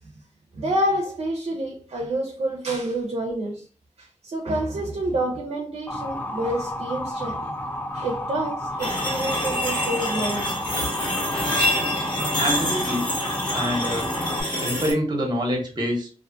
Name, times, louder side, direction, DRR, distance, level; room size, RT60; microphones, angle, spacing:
voice 1, 0.6-3.6 4.2-7.5 7.9-10.5, right 1 dB, 60° right, 0.5 m, -28 dB
Motor vehicle (road) / Siren, 5.9-14.4, left 1 dB, 15° left, 0.4 m, -31 dB
sound 1, 8.8-14.9, left 1 dB, 35° left, 1.3 m, -26 dB
voice 2, 12.4-13.1 13.5-14.1 14.6-16.1, equal, 35° right, 0.9 m, -26 dB
2.5 x 2.4 x 2.5 m
cardioid pair, 65°, 12 cm